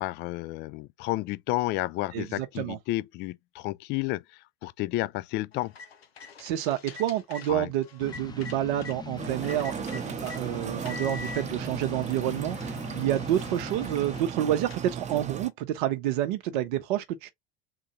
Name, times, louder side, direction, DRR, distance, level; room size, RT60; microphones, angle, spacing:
voice 1, 0.0-5.7 7.5-7.7, left 18 dB, 35° left, 0.4 m, -31 dB
voice 2, 2.1-2.8 6.4-17.3, right 12 dB, 55° right, 0.7 m, -29 dB
sound 1, 5.5-9.0 9.4-10.4 10.8-11.4 12.1-12.2 12.5-15.3, left 4 dB, 85° left, 0.8 m, -45 dB
sound 2, 8.0-14.2, left 5 dB, 15° left, 0.9 m, -41 dB
sound 3, 9.2-15.5, right 7 dB, 25° right, 0.8 m, -37 dB
3.8 x 2.6 x 4.2 m
figure-of-eight pair, 75°, 30 cm